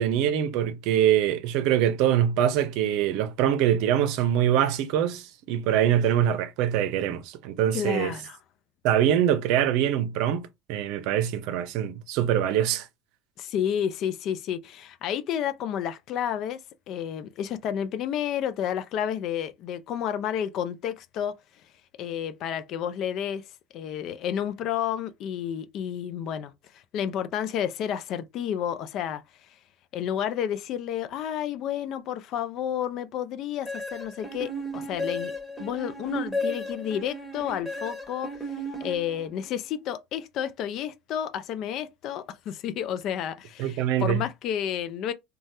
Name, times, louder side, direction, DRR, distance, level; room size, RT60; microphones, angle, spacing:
voice 1, 0.0-8.1 8.8-12.9 43.6-44.2, right 10 dB, 65° right, 0.6 m, -24 dB
voice 2, 7.7-8.4 13.4-16.6 16.9-21.3 22.0-23.4 23.7-29.2 29.9-35.3 35.6-38.3 38.8-45.1, left 9 dB, 55° left, 0.4 m, -31 dB
sound 1, 33.7-39.5, left 1 dB, 5° left, 1.2 m, -34 dB
3.1 x 2.3 x 2.7 m
hypercardioid pair, 90°, 0 cm